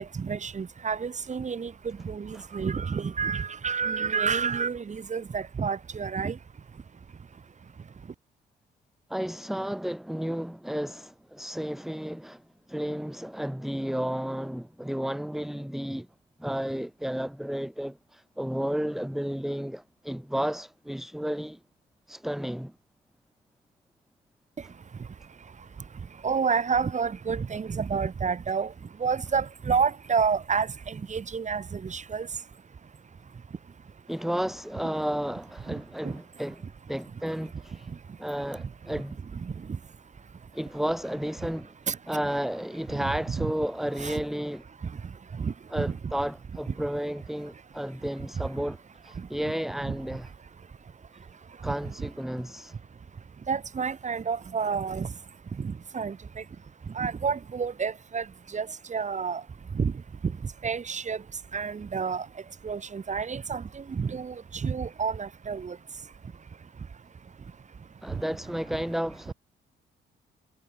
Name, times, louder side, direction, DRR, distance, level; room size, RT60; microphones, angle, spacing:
voice 1, 0.0-6.4 26.2-28.7 29.0-32.3 36.0-36.1 39.4-39.5 41.9-42.0 43.3-43.5 44.0-44.2 45.4-46.0 49.9-50.0 53.5-55.1 55.6-56.2 57.0-58.2 58.5-59.4 59.7-59.9 60.2-60.3 60.6-61.2 61.5-62.3 62.6-65.8, right 6 dB, 35° right, 2.4 m, -29 dB
voice 2, 9.1-12.4 12.7-16.1 16.4-21.6 22.1-22.7 34.1-37.9 38.2-39.2 40.5-41.7 42.1-44.6 45.7-50.3 51.6-52.8 68.0-69.3, equal, ahead, 1.8 m, -32 dB
cardioid pair, 90°, 20 cm